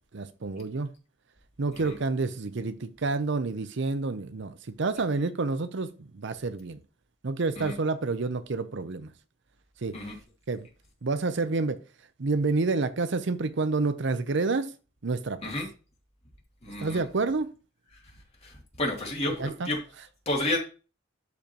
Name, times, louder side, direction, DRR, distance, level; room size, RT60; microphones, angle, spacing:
voice 1, 0.1-0.9 1.6-6.8 7.2-9.1 9.8-10.0 10.5-10.7 11.0-11.8 12.2-14.7 15.0-15.6 16.8-17.5 19.3-19.7, right 3 dB, 65° right, 0.7 m, -29 dB
voice 2, 16.6-17.0 18.8-19.8 20.3-20.6, left 1 dB, 35° left, 2.7 m, -30 dB
12.0 x 5.0 x 3.0 m
head